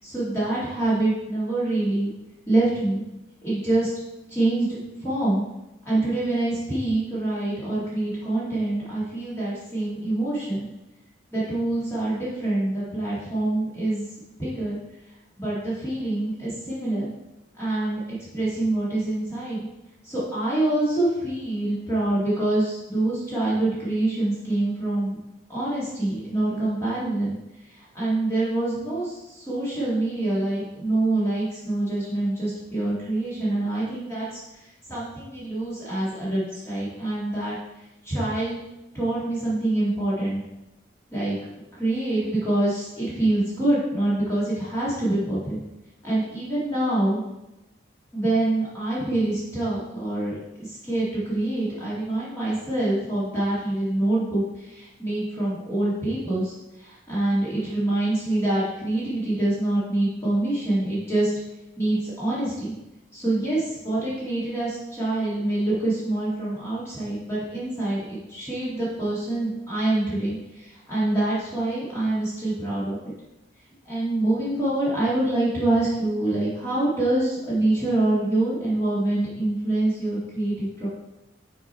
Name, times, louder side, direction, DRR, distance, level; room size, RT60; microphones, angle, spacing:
voice 1, 0.0-2.1 2.5-3.0 3.4-3.9 4.3-5.4 5.9-10.7 11.3-14.1 14.4-14.8 15.4-17.1 17.5-19.6 20.0-25.2 25.5-27.4 27.7-37.6 38.0-38.6 38.9-40.4 41.1-41.4 41.7-45.6 46.0-47.2 48.1-61.3 61.8-62.7 63.1-73.0 73.8-80.9, right 2 dB, 15° left, -9 dB, 2.0 m, -25 dB
6.6 x 4.4 x 4.4 m, 0.94 s
head